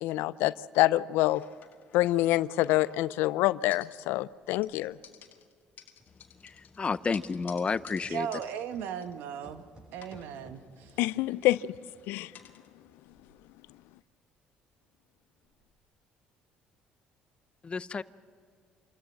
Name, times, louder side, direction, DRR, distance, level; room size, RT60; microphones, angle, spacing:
voice 1, 0.0-1.4 1.9-5.0 11.0-11.7 12.1-12.3, left 16 dB, 85° left, 19 dB, 0.5 m, -26 dB
sound 1, 1.3-3.3 3.7-4.3 4.6-9.6 9.9-12.7, left 9 dB, 60° left, 1.8 m, -55 dB
sound 2, 4.4-13.8 14.1-14.2 14.7-14.8 15.3-15.8, right 1 dB, 30° right, 6.4 m, -60 dB
voice 2, 6.4-8.3 17.6-18.0, left 5 dB, 30° left, 16 dB, 0.7 m, -31 dB
voice 3, 8.1-9.6 9.9-10.9, right 8 dB, 80° right, 9 dB, 1.4 m, -37 dB
27.5 x 13.5 x 7.4 m, 2.2 s
supercardioid pair, 85°, 4 cm